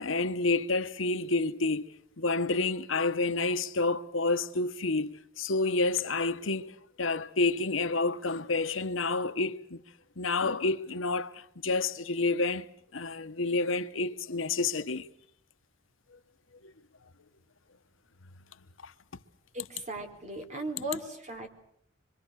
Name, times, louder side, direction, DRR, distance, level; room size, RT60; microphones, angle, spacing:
voice 1, 0.0-1.9 2.2-6.7 7.0-9.8 10.2-15.1 16.6-16.7 18.8-18.9, left 3 dB, 90° left, 1.2 m, -29 dB
voice 2, 19.5-21.5, right 1 dB, 40° right, 4.1 m, -37 dB
27.0 x 24.0 x 6.5 m
head